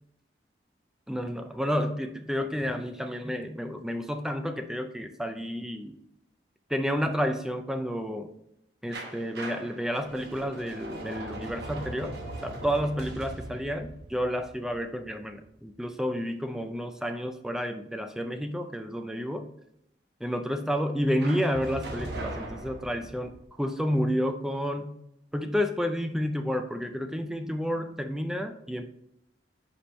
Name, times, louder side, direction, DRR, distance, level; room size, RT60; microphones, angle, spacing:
voice 1, 1.1-6.0 6.7-8.3 8.8-19.5 20.2-25.0 25.3-28.9, equal, 5° right, 6 dB, 0.3 m, -30 dB
sound 1, 8.9-15.7 21.2-23.4, right 2 dB, 65° right, 0.9 m, -40 dB
5.2 x 4.4 x 4.3 m, 0.80 s
head